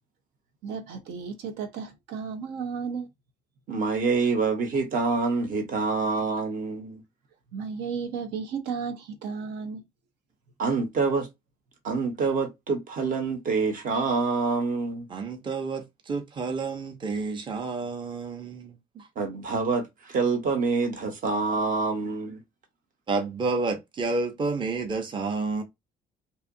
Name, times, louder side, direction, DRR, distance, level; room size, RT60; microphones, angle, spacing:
voice 1, 0.6-3.1 7.5-9.8, right 6 dB, 80° right, 0.6 m, -34 dB
voice 2, 3.7-7.0 10.6-11.3 11.8-15.0 19.2-22.4, right 4 dB, 55° right, 0.9 m, -26 dB
voice 3, 15.1-19.1 23.1-25.6, right 3 dB, 30° right, 0.6 m, -30 dB
2.7 x 2.4 x 2.4 m
cardioid pair, 110°, 17 cm